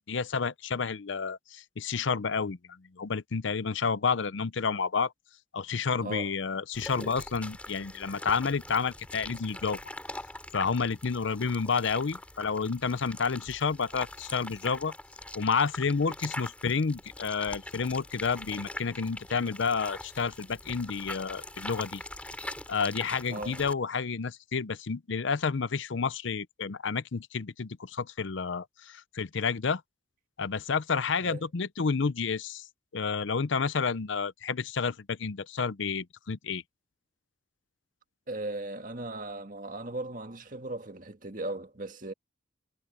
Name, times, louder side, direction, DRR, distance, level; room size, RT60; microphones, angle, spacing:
voice 1, 0.0-5.1 5.5-9.8 10.5-14.9 15.3-22.0 22.7-29.8 30.4-32.6 32.9-36.6, left 5 dB, 70° left, 0.6 m, -30 dB
voice 2, 6.0-6.3 23.3-23.6 31.2-31.4 38.3-42.1, right 2 dB, 40° right, 1.8 m, -37 dB
sound 1, 6.7-23.7, left 1 dB, 5° left, 3.3 m, -43 dB
head